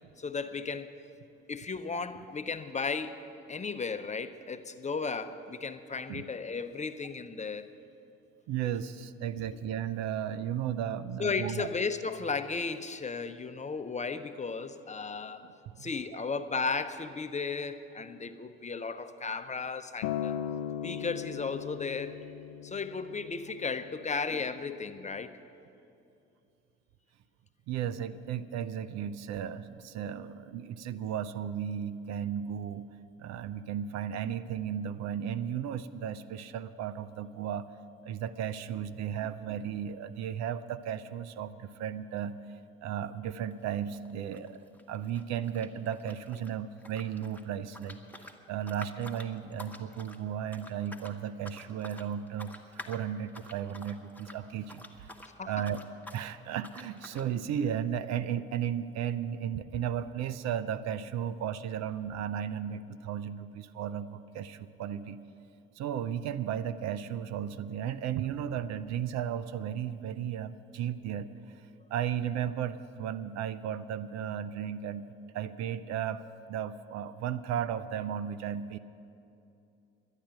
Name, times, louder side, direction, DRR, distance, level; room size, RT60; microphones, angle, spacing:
voice 1, 0.2-0.9 1.5-3.2 3.5-7.7 11.2-15.5 15.8-20.4 20.8-22.1 22.6-25.3 55.3-55.7, left 4 dB, 25° left, 10 dB, 0.8 m, -35 dB
voice 2, 8.5-11.7 15.4-15.9 27.7-32.8 33.2-37.7 38.0-55.1 55.4-55.8 56.1-65.2 65.8-78.8, right 9 dB, 60° right, 15 dB, 0.6 m, -35 dB
Acoustic guitar, 20.0-24.3 25.2-25.3, left 10 dB, 75° left, 0.5 m, -38 dB
sound 1, 43.5-43.7 43.9-46.5 46.8-55.3 55.6-56.3 56.6-57.3, left 1 dB, 5° left, 1.3 m, -49 dB
11.5 x 9.8 x 8.9 m, 2.7 s
hypercardioid pair, 60°, 30 cm